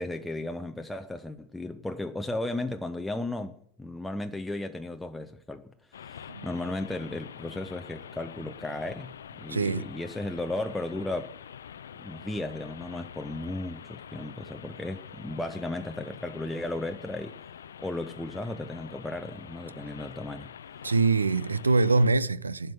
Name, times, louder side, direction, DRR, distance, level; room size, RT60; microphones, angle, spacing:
voice 1, 0.0-5.7 6.0-11.3 12.0-17.3 17.8-20.5, left 2 dB, 5° left, 0.6 m, -35 dB
sound 1, 5.9-22.1, left 8 dB, 65° left, 0.5 m, -46 dB
voice 2, 9.5-9.9 20.8-22.7, right 3 dB, 75° right, 0.6 m, -24 dB
12.0 x 8.0 x 8.8 m
figure-of-eight pair, 90°, 0 cm